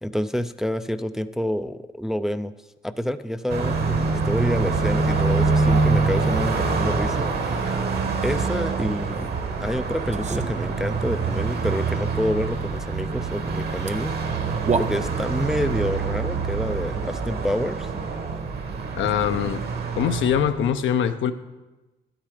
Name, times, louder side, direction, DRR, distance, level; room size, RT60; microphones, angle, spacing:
voice 1, 0.0-2.5 2.8-7.8 8.2-9.3 9.6-14.1 14.8-17.9, equal, ahead, 11 dB, 0.4 m, -28 dB
Car passing by, 3.5-20.7, right 4 dB, 55° right, 1.4 m, -25 dB
sound 1, 9.1-9.4 10.0-11.0 13.6-13.7 13.9-14.0 14.4-15.4, right 4 dB, 35° right, 0.7 m, -30 dB
voice 2, 19.0-19.6 19.9-21.3, left 9 dB, 75° left, 9 dB, 0.8 m, -23 dB
12.0 x 9.0 x 5.0 m, 1.1 s
cardioid pair, 90°, 20 cm